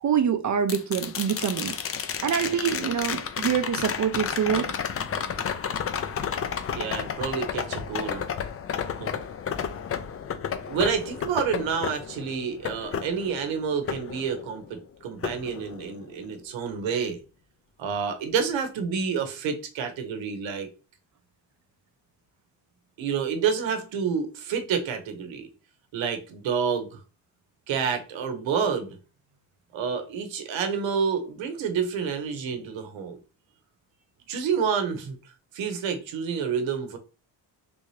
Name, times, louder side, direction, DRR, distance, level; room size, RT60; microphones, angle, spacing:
voice 1, 0.0-1.7 2.2-4.7, right 8 dB, 40° right, 0.5 m, -25 dB
sound 1, 0.7-14.8 15.2-16.3 18.5-18.6, left 7 dB, 35° left, 0.4 m, -32 dB
voice 2, 6.7-8.3 9.0-9.1 10.7-17.2 17.8-20.7 23.0-25.5 25.9-27.0 27.7-29.0 29.7-33.2 34.3-35.2 35.5-37.0, right 6 dB, 85° right, 0.9 m, -29 dB
3.5 x 2.7 x 3.1 m
cardioid pair, 105°, 44 cm